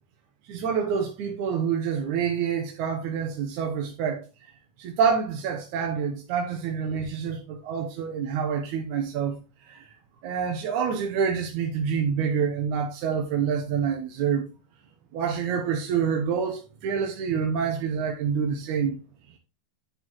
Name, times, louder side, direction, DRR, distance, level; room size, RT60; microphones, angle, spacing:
voice 1, 0.5-4.5 4.8-9.9 10.2-14.5 15.1-19.0, right 7 dB, 65° right, 2.0 m, -27 dB
10.5 x 6.8 x 3.1 m
omnidirectional pair, 4.3 m